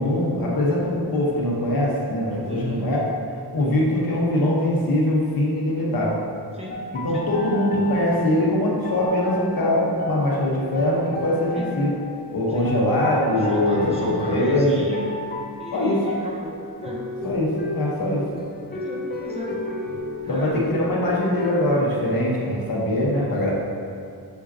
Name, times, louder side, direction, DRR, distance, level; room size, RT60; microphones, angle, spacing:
voice 1, 0.0-3.0 3.5-6.2 7.0-11.9 12.3-14.8 15.7-16.0 17.2-18.2 20.3-23.5, left 1 dB, 60° left, -4 dB, 1.2 m, -22 dB
voice 2, 2.5-3.0 6.5-7.3 11.5-11.8 12.5-12.7 13.3-15.2 15.6-16.5 16.8-17.1 18.7-19.6 20.2-20.7, equal, 15° right, -5 dB, 0.7 m, -34 dB
sound 1, 6.7-21.7, left 1 dB, 25° left, 0.4 m, -34 dB
6.7 x 5.1 x 2.8 m, 2.5 s
wide cardioid pair, 175°, 39 cm